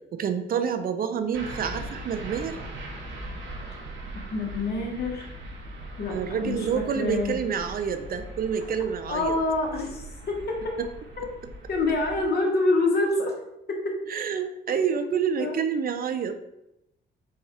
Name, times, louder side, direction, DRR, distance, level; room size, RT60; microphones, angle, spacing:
voice 1, 0.1-2.6 6.1-9.4 10.8-10.9 14.1-16.4, right 7 dB, 45° right, 9 dB, 0.4 m, -28 dB
sound 1, 1.3-12.2, right 1 dB, 70° right, 0.9 m, -40 dB
voice 2, 4.3-5.3 6.0-7.4 9.1-10.4 11.2-11.3 11.7-13.3 13.7-13.9 14.7-14.8 15.4-15.6, left 2 dB, 55° left, 1 dB, 1.2 m, -26 dB
4.2 x 2.3 x 4.6 m, 0.86 s
cardioid pair, 90°, 20 cm